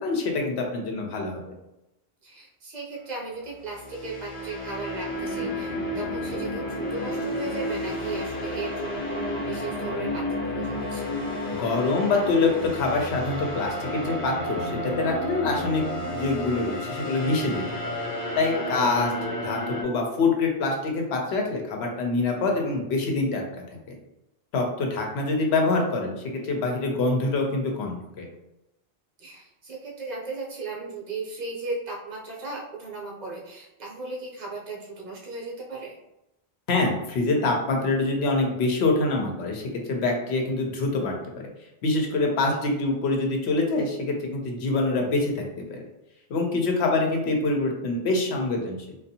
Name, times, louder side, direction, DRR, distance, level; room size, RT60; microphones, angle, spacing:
voice 1, 0.0-1.5 11.5-15.8 16.1-17.6 18.4-19.1 19.4-23.4 24.5-28.3 36.7-41.5 41.8-45.8 46.3-49.0, left 3 dB, 75° left, 1 dB, 0.8 m, -25 dB
voice 2, 2.2-11.1 18.5-18.9 29.2-36.0, right 3 dB, 45° right, -3 dB, 0.8 m, -36 dB
sound 1, 3.6-19.8, left 1 dB, 40° left, 0.8 m, -31 dB
2.5 x 2.3 x 2.7 m, 0.90 s
omnidirectional pair, 1.1 m